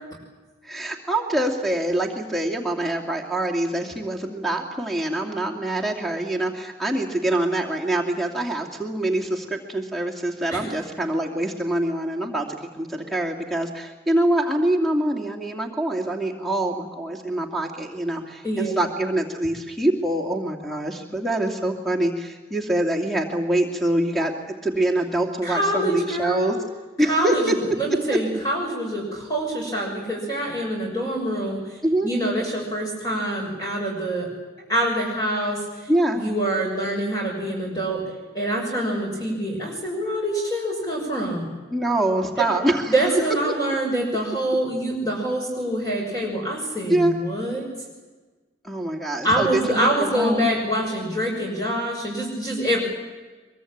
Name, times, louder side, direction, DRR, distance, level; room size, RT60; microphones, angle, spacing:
voice 1, 0.6-26.6 27.0-27.5 28.1-28.2 31.8-32.1 35.9-36.2 41.7-42.9 46.9-47.1 48.6-50.5, right 1 dB, ahead, 1 dB, 2.6 m, -25 dB
voice 2, 25.4-26.5 27.0-31.8 32.0-34.3 34.7-35.9 36.1-38.0 38.3-41.5 42.9-47.7 49.2-52.8, right 1 dB, 20° left, -2 dB, 6.6 m, -25 dB
23.5 x 23.5 x 8.8 m, 1.3 s
head